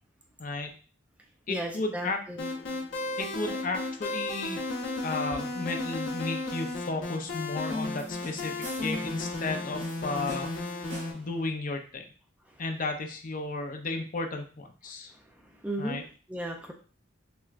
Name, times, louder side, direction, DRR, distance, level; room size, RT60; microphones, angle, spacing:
voice 1, 0.4-0.7 1.5-2.2 3.2-4.6 5.0-10.5 11.1-12.0 12.6-15.1 15.8-16.0, left 3 dB, 45° left, 4 dB, 0.5 m, -33 dB
voice 2, 1.5-2.4 15.6-16.0 16.3-16.7, right 1 dB, 5° right, 2 dB, 0.4 m, -34 dB
sound 1, 2.4-11.1, left 2 dB, 80° left, 1.2 m, -34 dB
sound 2, 8.0-9.2 9.8-11.4, equal, 70° right, 1.6 m, -45 dB
6.0 x 2.2 x 2.4 m, 0.39 s
head